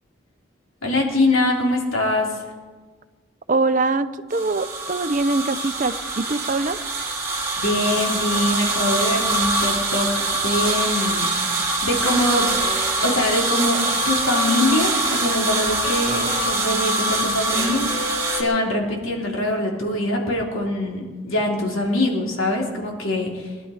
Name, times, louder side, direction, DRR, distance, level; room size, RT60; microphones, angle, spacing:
voice 1, 0.8-2.3 7.6-10.1 10.4-12.5 13.0-13.8 14.0-23.5, left 1 dB, 85° left, -1 dB, 3.3 m, -23 dB
voice 2, 3.5-6.8, right 3 dB, 40° right, 12 dB, 0.5 m, -23 dB
sound 1, 4.3-18.4, right 2 dB, 15° right, 2.2 m, -24 dB
Wind instrument woodwind instrument, 12.0-19.0, left 1 dB, 20° left, 3.0 m, -35 dB
21.5 x 11.5 x 5.0 m, 1.4 s
head